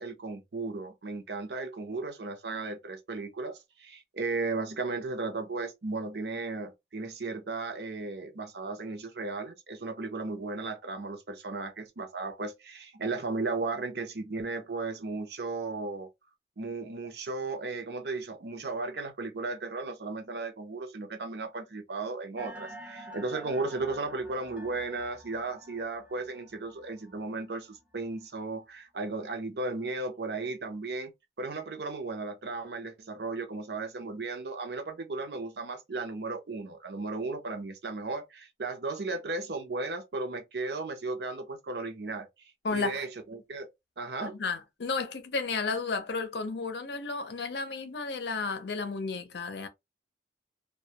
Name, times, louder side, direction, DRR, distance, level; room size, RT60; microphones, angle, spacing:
voice 1, 0.0-16.1 16.6-31.1 31.4-43.7 44.0-44.4, right 3 dB, 60° right, 0.6 m, -35 dB
sound 1, 22.4-28.0, equal, 5° right, 0.4 m, -48 dB
voice 2, 42.6-43.0 44.2-49.7, left 4 dB, 65° left, 0.5 m, -33 dB
2.2 x 2.1 x 2.7 m
head